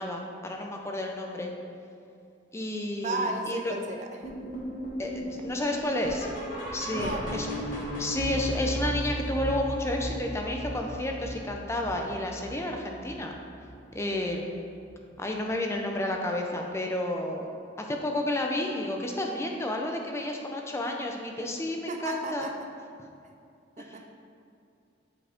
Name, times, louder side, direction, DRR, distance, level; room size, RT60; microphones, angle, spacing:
voice 1, 0.0-1.5 2.5-3.7 5.0-6.3 6.7-13.3 13.9-14.6 15.2-17.5 17.9-22.5 23.8-24.0, left 1 dB, 15° left, 1 dB, 0.5 m, -31 dB
voice 2, 3.0-4.5 6.8-7.3 7.8-7.9 21.9-22.5 23.8-24.1, right 2 dB, 40° right, 4 dB, 0.5 m, -34 dB
sound 1, 4.2-13.3 13.6-13.9 14.2-14.3 14.9-15.0 15.5-15.6, equal, 45° left, 1.4 m, -36 dB
8.2 x 5.1 x 3.5 m, 2.5 s
head